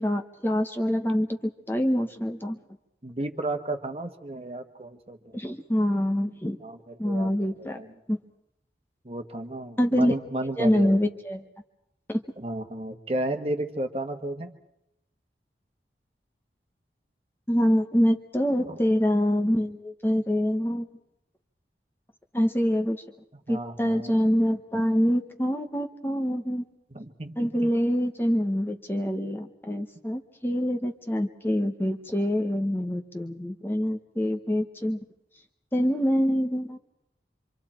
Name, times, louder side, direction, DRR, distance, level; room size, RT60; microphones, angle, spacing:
voice 1, 0.0-2.6 5.3-6.6 7.0-7.8 8.1-8.2 9.8-10.1 10.6-11.5 12.1-12.2 17.5-20.9 22.3-23.0 23.5-26.6 27.4-35.0 35.7-36.8, equal, 10° left, 4 dB, 1.0 m, -25 dB
voice 2, 3.0-5.4 6.6-8.0 9.0-11.0 12.4-14.5 18.6-18.9 23.5-24.1 26.9-27.7, right 1 dB, 35° right, 6 dB, 1.4 m, -33 dB
26.5 x 26.0 x 4.4 m, 0.81 s
head